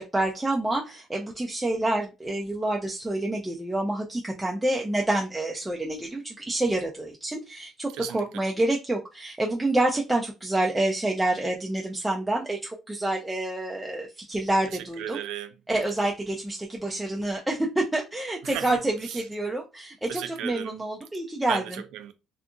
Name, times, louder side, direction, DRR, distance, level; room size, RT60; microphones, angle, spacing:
voice 1, 0.0-15.2 15.7-21.6, right 1 dB, 5° right, 0.3 m, -28 dB
voice 2, 7.9-8.5 14.7-15.6 18.4-19.3 20.1-20.9 21.5-22.1, right 10 dB, 85° right, 0.4 m, -36 dB
2.7 x 2.4 x 2.3 m
cardioid pair, 145°, 0 cm